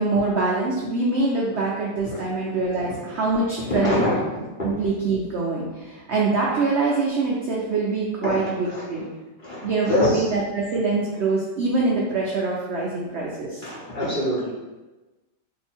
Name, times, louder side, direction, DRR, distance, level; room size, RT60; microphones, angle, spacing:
voice 1, 0.0-4.0 4.6-9.0 9.6-13.6, right 3 dB, 70° right, -5 dB, 0.6 m, -24 dB
voice 2, 3.6-4.4 8.2-8.8 9.4-10.2 13.6-14.5, left 1 dB, 35° left, -9 dB, 1.0 m, -25 dB
2.7 x 2.7 x 4.3 m, 1.1 s
omnidirectional pair, 1.8 m